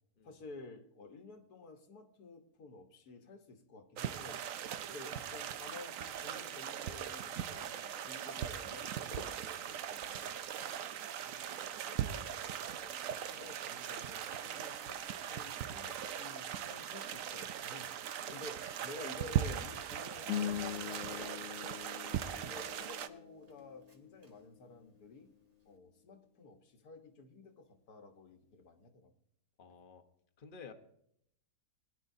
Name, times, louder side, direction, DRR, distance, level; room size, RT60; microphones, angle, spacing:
voice 1, 0.2-10.5 10.7-10.8 11.8-12.3 12.7-18.0 18.3-21.8 22.5-25.3 25.7-29.1, left 3 dB, 85° left, 5 dB, 1.8 m, -52 dB
sound 1, 4.0-23.1, right 10 dB, 65° right, 1.0 m, -40 dB
Walk footsteps, 8.8-10.1 10.4-25.8, right 1 dB, 30° right, 1.2 m, -57 dB
sound 2, 20.2-24.8, left 10 dB, 65° left, 1.3 m, -42 dB
voice 2, 29.6-30.0 30.4-30.7, left 5 dB, 40° left, 6 dB, 1.0 m, -53 dB
21.0 x 10.5 x 2.7 m, 0.71 s
omnidirectional pair, 1.6 m